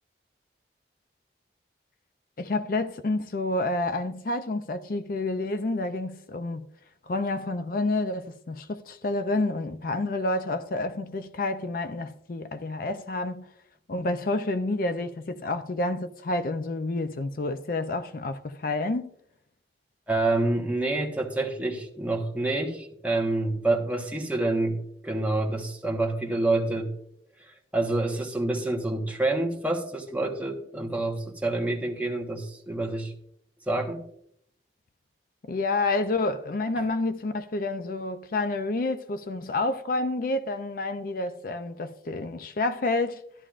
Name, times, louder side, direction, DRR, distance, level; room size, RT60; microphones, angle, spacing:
voice 1, 2.4-6.7 7.1-13.5 13.9-19.1 35.5-43.2, left 2 dB, 50° left, 0.5 m, -29 dB
voice 2, 20.1-26.9 27.4-33.1 33.7-34.0, right 2 dB, 10° right, 1.2 m, -27 dB
13.0 x 11.0 x 2.5 m
head